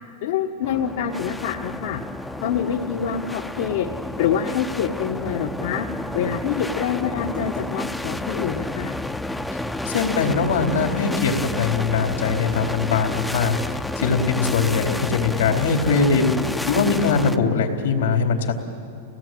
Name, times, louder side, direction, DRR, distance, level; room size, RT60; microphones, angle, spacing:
voice 1, 0.2-2.0 2.4-3.9 4.2-5.9 6.1-8.9, left 8 dB, 65° left, 2 dB, 1.4 m, -26 dB
sound 1, 0.6-17.4, left 1 dB, 5° left, 0.7 m, -30 dB
voice 2, 9.9-13.6 14.0-16.2 16.7-18.5, left 5 dB, 85° left, 2 dB, 3.8 m, -21 dB
30.0 x 18.5 x 9.2 m, 2.4 s
supercardioid pair, 145°, 0 cm